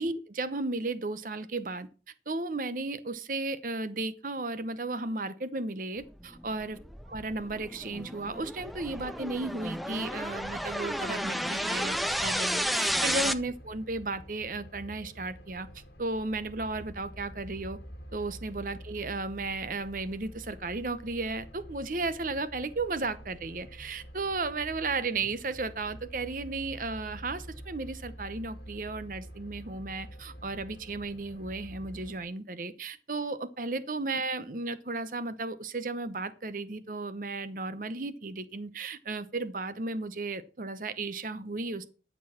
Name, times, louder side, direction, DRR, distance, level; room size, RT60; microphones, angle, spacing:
voice 1, 0.0-1.9 2.3-6.8 7.1-15.7 16.0-17.8 18.1-41.9, right 3 dB, 50° right, 13 dB, 0.8 m, -34 dB
sound 1, 6.4-13.3, equal, ahead, 0.4 m, -32 dB
sound 2, 12.9-32.2, equal, 60° left, 2.4 m, -47 dB
12.5 x 4.6 x 7.4 m, 0.37 s
head